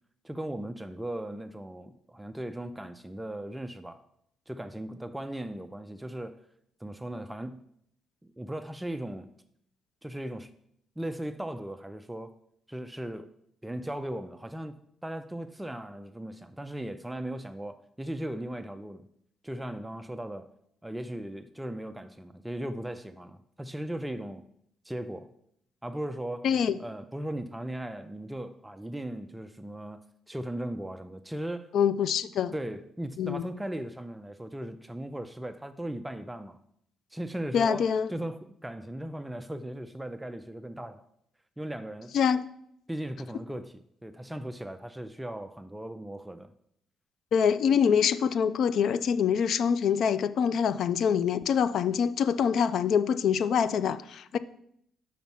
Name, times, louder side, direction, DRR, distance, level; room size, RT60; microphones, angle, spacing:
voice 1, 0.2-4.0 4.5-6.4 6.8-7.6 8.4-9.3 10.0-10.5 11.0-12.4 12.7-13.3 13.6-14.8 15.0-19.1 19.4-20.5 20.8-24.4 24.8-25.3 25.8-26.5 26.8-31.7 32.5-36.6 37.1-41.1 41.6-42.2 42.9-46.5, right 1 dB, 10° right, 0.4 m, -37 dB
voice 2, 26.4-26.8 31.7-32.5 33.2-33.5 37.5-38.1 42.1-42.5 47.3-54.4, left 7 dB, 70° left, 0.4 m, -25 dB
5.8 x 5.2 x 5.5 m
cardioid pair, 90°, 0 cm